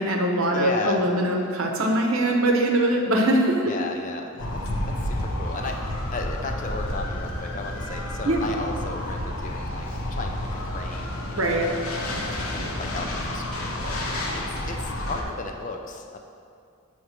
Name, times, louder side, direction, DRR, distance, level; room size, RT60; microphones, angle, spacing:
voice 1, 0.0-3.6 8.2-8.5 11.4-11.7, right 1 dB, 70° right, 2 dB, 0.8 m, -22 dB
voice 2, 0.5-1.1 3.6-4.6 4.9-11.8 12.5-16.2, left 3 dB, 35° left, 3 dB, 0.4 m, -35 dB
sound 1, 4.4-15.2, left 1 dB, 80° left, 0.9 m, -30 dB
8.0 x 3.2 x 5.7 m, 2.4 s
head